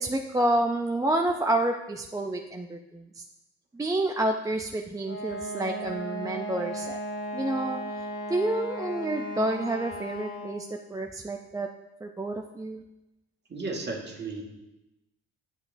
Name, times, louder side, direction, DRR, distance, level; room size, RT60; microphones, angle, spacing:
voice 1, 0.0-3.0 3.7-7.0 7.3-7.8 8.3-11.7 12.0-12.8, right 1 dB, 10° right, 2 dB, 0.4 m, -29 dB
Wind instrument woodwind instrument, 5.0-10.7, right 1 dB, 50° left, 1.5 m, -36 dB
voice 2, 13.5-14.4, right 3 dB, 35° right, 0 dB, 1.6 m, -34 dB
8.7 x 7.9 x 2.6 m, 0.97 s
cardioid pair, 90°, 30 cm